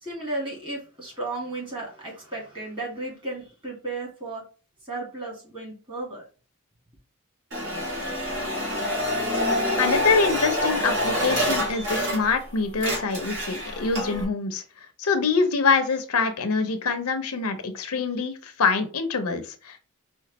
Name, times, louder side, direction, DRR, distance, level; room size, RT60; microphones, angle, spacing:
voice 1, 0.0-4.4 4.8-6.3, right 2 dB, 20° right, -3 dB, 2.1 m, -34 dB
sound 1, 7.5-12.5 12.7-14.2, equal, 55° right, 2.0 m, -26 dB
voice 2, 9.8-14.6 15.0-19.9, left 4 dB, 85° left, 8 dB, 0.7 m, -25 dB
5.1 x 2.3 x 4.1 m, 0.35 s
head